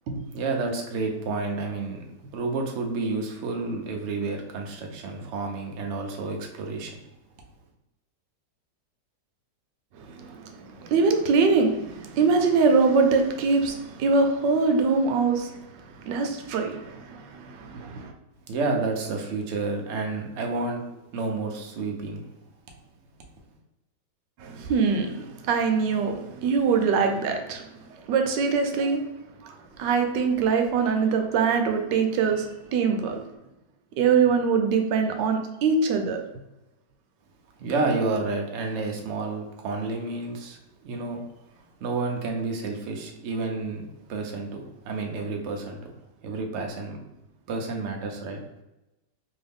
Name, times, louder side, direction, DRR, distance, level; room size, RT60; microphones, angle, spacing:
voice 1, 0.3-2.0 2.3-7.0 18.5-22.2 37.6-41.2 41.8-45.9 46.2-47.0 47.5-48.4, right 3 dB, 65° right, 2 dB, 0.7 m, -30 dB
voice 2, 9.9-18.1 24.4-27.7 28.1-29.0 29.4-33.2 34.0-36.2, right 5 dB, 90° right, 5 dB, 1.2 m, -23 dB
3.1 x 2.6 x 3.4 m, 0.96 s
omnidirectional pair, 1.8 m